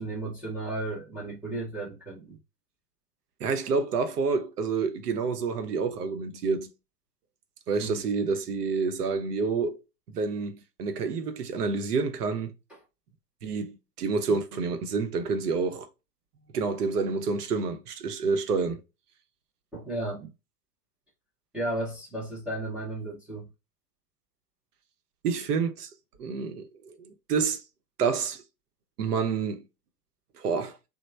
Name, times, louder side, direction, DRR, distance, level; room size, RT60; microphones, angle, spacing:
voice 1, 0.0-2.4 7.8-8.0 12.7-12.8 19.7-20.3 21.5-23.5, right 2 dB, 5° right, 0.3 m, -34 dB
voice 2, 3.4-6.7 7.7-9.8 10.1-12.5 13.4-15.9 16.5-18.8 25.2-25.9 26.2-27.6 28.0-28.4 29.0-29.6 30.4-30.8, right 4 dB, 70° right, 0.7 m, -28 dB
3.0 x 2.0 x 3.0 m
figure-of-eight pair, 95°, 48 cm